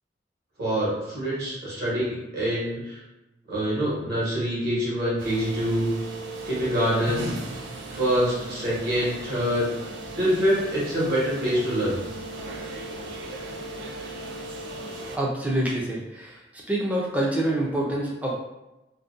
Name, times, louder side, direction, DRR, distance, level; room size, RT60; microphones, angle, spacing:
voice 1, 0.6-3.0 3.5-5.9 6.4-7.4 7.9-9.7 10.2-12.0, equal, 60° right, -8 dB, 1.1 m, -25 dB
sound 1, 5.2-15.2, right 2 dB, 75° right, 0.4 m, -37 dB
voice 2, 15.1-16.4 16.7-18.4, right 1 dB, 10° right, -3 dB, 0.4 m, -26 dB
2.6 x 2.1 x 2.4 m, 0.99 s
head